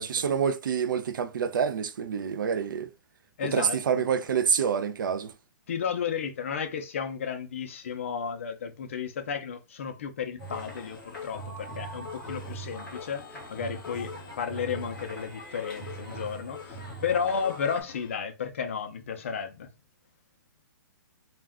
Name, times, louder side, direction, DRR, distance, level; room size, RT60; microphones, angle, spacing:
voice 1, 0.0-2.9 3.5-5.3, right 7 dB, 70° right, 0.4 m, -27 dB
voice 2, 3.4-4.0 5.7-19.7, left 7 dB, 40° left, 0.4 m, -33 dB
sound 1, 10.4-17.8, right 2 dB, 5° left, 0.7 m, -42 dB
sound 2, 10.5-18.2, left 7 dB, 80° left, 0.7 m, -46 dB
2.3 x 2.1 x 3.4 m
hypercardioid pair, 180°, 11 cm